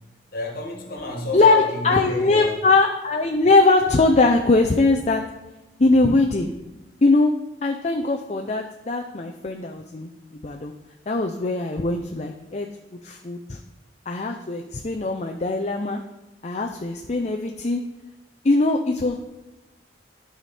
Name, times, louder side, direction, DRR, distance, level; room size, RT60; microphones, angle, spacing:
voice 1, 0.3-2.5, left 1 dB, 55° left, 1 dB, 1.7 m, -30 dB
voice 2, 1.3-5.2 5.8-6.5 7.0-7.3 7.6-10.7 11.1-12.7 13.0-13.6 14.1-16.0 16.4-17.8 18.4-19.2, left 3 dB, 40° left, 3 dB, 0.5 m, -21 dB
12.0 x 5.0 x 4.2 m, 1.0 s
head